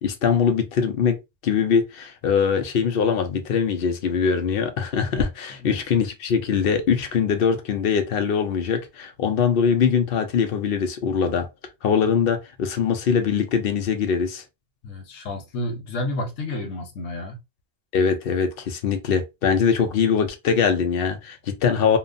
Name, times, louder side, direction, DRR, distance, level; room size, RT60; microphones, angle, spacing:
voice 1, 0.0-11.5 11.8-14.4 17.9-22.0, left 6 dB, 60° left, 0.7 m, -22 dB
voice 2, 5.6-6.0 14.8-17.4, left 1 dB, 90° left, 1.1 m, -31 dB
3.0 x 2.1 x 2.4 m
omnidirectional pair, 1.1 m